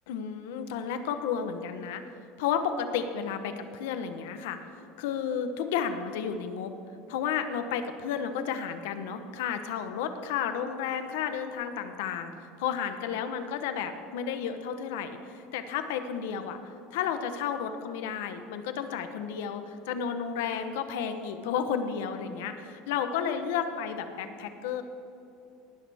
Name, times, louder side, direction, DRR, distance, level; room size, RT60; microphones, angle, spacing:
voice 1, 0.1-2.0 2.4-6.7 7.1-12.3 12.6-24.8, left 7 dB, 80° left, 8 dB, 0.9 m, -32 dB
19.0 x 10.5 x 3.5 m, 2.7 s
cardioid pair, 170°, 0 cm